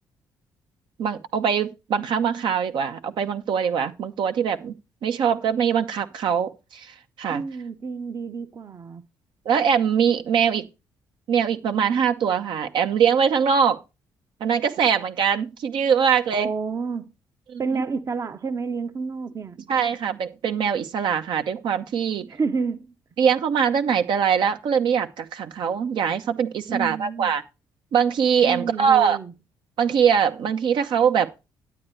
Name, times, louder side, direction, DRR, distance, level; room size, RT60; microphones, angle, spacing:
voice 1, 1.0-4.7 5.0-7.4 9.4-10.7 11.3-13.8 14.4-16.5 17.5-17.8 19.7-22.3 23.2-27.4 27.9-29.2 29.8-31.3, right 7 dB, 70° right, 0.9 m, -22 dB
voice 2, 7.3-9.1 16.3-17.1 17.6-19.6 22.3-22.9 26.7-27.3 28.4-29.3, right 5 dB, 40° right, 0.8 m, -29 dB
10.5 x 8.8 x 3.2 m
cardioid pair, 85°, 9 cm